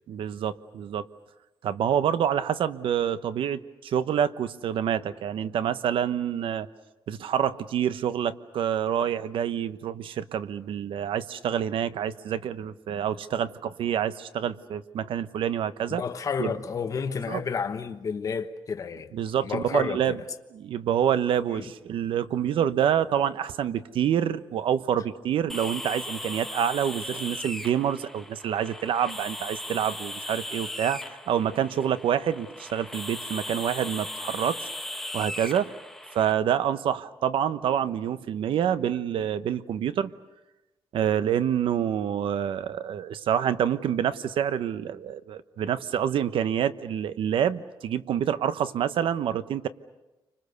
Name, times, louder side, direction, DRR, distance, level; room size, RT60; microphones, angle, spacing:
voice 1, 0.1-1.0 1.6-6.7 7.1-16.0 16.4-16.5 17.3-17.4 19.1-20.2 20.5-31.0 31.3-34.7 35.1-35.7 36.1-40.1 40.9-49.7, right 9 dB, 90° right, 1.0 m, -27 dB
voice 2, 15.9-19.1 19.4-20.2 21.5-21.7, left 6 dB, 40° left, 1.2 m, -31 dB
sound 1, 25.5-36.3, left 1 dB, 5° left, 1.1 m, -37 dB
30.0 x 25.5 x 6.8 m
wide cardioid pair, 155°, 9 cm